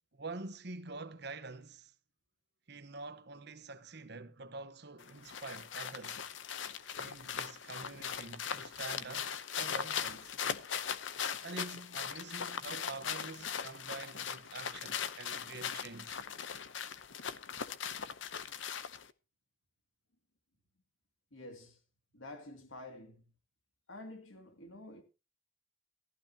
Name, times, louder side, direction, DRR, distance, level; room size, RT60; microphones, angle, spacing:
voice 1, 0.1-1.9 2.7-6.3 7.0-10.3 11.4-16.2, right 3 dB, 55° right, 1.2 m, -46 dB
sound 1, 5.0-19.1, left 7 dB, 70° left, 0.8 m, -39 dB
voice 2, 21.3-21.8 22.1-23.3 23.9-25.0, left 2 dB, 85° left, 2.5 m, -49 dB
14.5 x 14.0 x 2.9 m
head